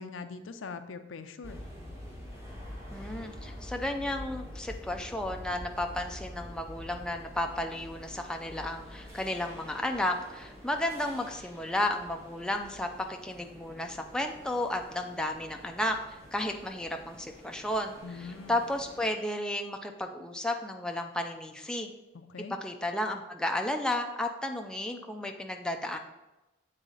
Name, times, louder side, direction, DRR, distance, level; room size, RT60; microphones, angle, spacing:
voice 1, 0.0-1.6 18.0-18.6 22.1-22.5, left 4 dB, 90° left, 9 dB, 0.5 m, -42 dB
sound 1, 1.4-19.1, left 1 dB, 15° right, 1.2 m, -47 dB
voice 2, 2.9-21.9 22.6-26.0, left 1 dB, 5° left, 3 dB, 0.4 m, -33 dB
7.8 x 4.0 x 3.8 m, 1.0 s
head